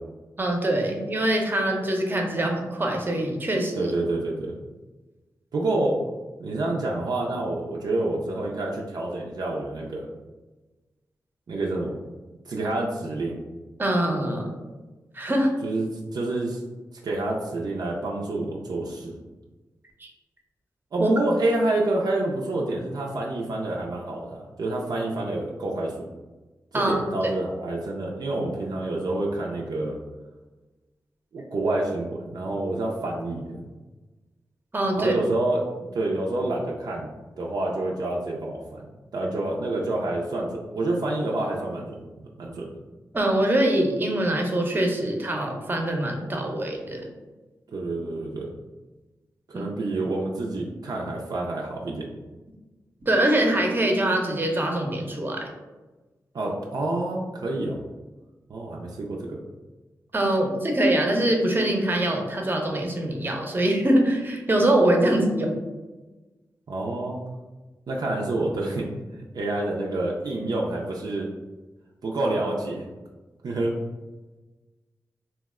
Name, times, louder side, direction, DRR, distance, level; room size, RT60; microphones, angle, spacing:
voice 1, 0.4-3.9 13.8-14.5 15.1-15.5 20.0-20.1 21.0-21.1 26.7-27.0 34.7-35.1 43.1-47.1 49.5-49.7 53.0-55.4 60.1-65.5, right 1 dB, 30° right, 1 dB, 0.6 m, -23 dB
voice 2, 3.7-4.6 5.5-6.1 6.4-10.1 11.5-12.0 12.5-13.4 15.6-16.6 17.0-19.2 20.9-26.1 26.7-30.0 31.3-33.6 35.0-38.9 39.1-42.1 42.4-42.8 47.7-48.5 49.5-52.1 56.3-57.8 58.5-59.4 66.7-67.2 67.9-68.9 69.1-71.3 72.0-72.9 73.4-73.7, right 2 dB, 65° right, -2 dB, 0.4 m, -28 dB
2.8 x 2.1 x 3.5 m, 1.2 s
cardioid pair, 55°, 7 cm